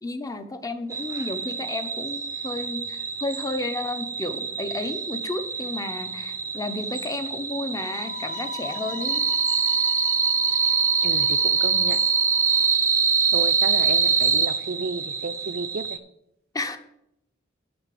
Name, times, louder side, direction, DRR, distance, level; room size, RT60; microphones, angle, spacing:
voice 1, 0.0-9.3 16.5-16.8, left 2 dB, 20° left, 9 dB, 0.7 m, -32 dB
sound 1, 0.9-16.0, right 5 dB, 15° right, 0.6 m, -25 dB
sound 2, 7.8-12.8, left 4 dB, 65° left, 1.1 m, -40 dB
voice 2, 11.0-12.0 13.3-16.0, right 3 dB, 55° right, 13 dB, 0.6 m, -32 dB
7.8 x 5.9 x 7.7 m, 0.81 s
head